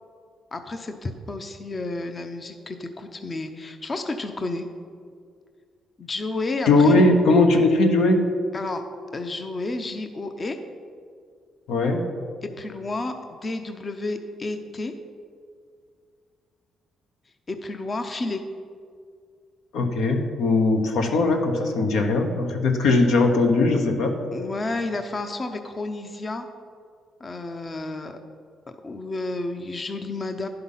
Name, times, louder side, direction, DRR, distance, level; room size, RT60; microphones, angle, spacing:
voice 1, 0.5-4.7 6.0-7.0 8.5-8.8 9.1-10.6 12.4-14.9 17.5-18.4 24.3-26.5 27.2-28.2 28.8-30.5, left 2 dB, 30° left, 6 dB, 0.6 m, -31 dB
voice 2, 6.7-8.2 11.7-12.0 19.7-24.2, left 2 dB, 85° left, 4 dB, 1.1 m, -19 dB
11.0 x 5.8 x 5.6 m, 2.2 s
cardioid pair, 90°, 0 cm